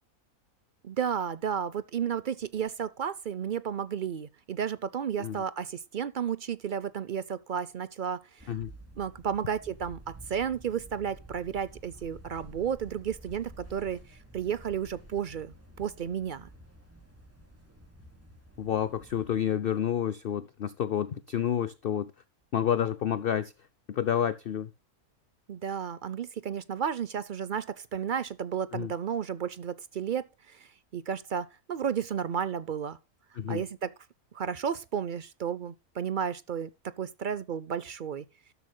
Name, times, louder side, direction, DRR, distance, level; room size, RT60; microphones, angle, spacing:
voice 1, 0.8-8.6 9.0-16.5 25.5-33.0 33.5-33.9 34.3-36.7 37.0-38.2, right 8 dB, 60° right, 0.5 m, -33 dB
sound 1, 8.4-19.4, right 1 dB, 10° right, 2.7 m, -51 dB
voice 2, 18.6-22.1 22.5-23.5 23.9-24.7 28.7-28.9 33.4-33.6, left 9 dB, 55° left, 0.6 m, -29 dB
13.0 x 12.5 x 2.2 m
omnidirectional pair, 1.6 m